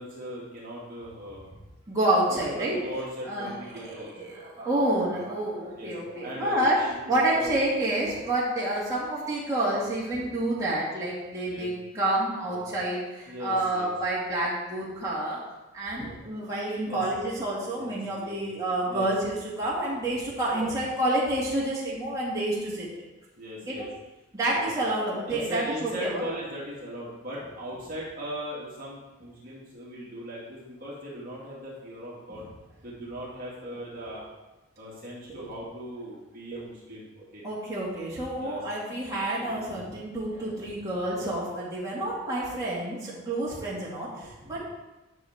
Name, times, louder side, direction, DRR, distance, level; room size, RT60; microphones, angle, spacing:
voice 1, 0.0-1.4 2.3-4.3 5.8-5.9 6.2-6.9 7.3-7.8 11.4-11.7 12.5-12.6 13.3-13.9 16.8-17.0 17.7-18.4 18.9-19.1 23.4-23.9 24.5-24.7 25.3-32.4 32.8-34.2 34.8-37.5 38.3-38.6 43.8-43.9 44.6-44.7, equal, 40° right, -6 dB, 2.2 m, -39 dB
voice 2, 1.9-2.8 3.3-6.8 7.1-15.4 15.7-22.9 23.6-23.9 24.3-26.2 35.3-35.5 37.4-44.6, right 1 dB, 15° right, -8 dB, 2.3 m, -29 dB
11.0 x 6.2 x 3.6 m, 1.1 s
head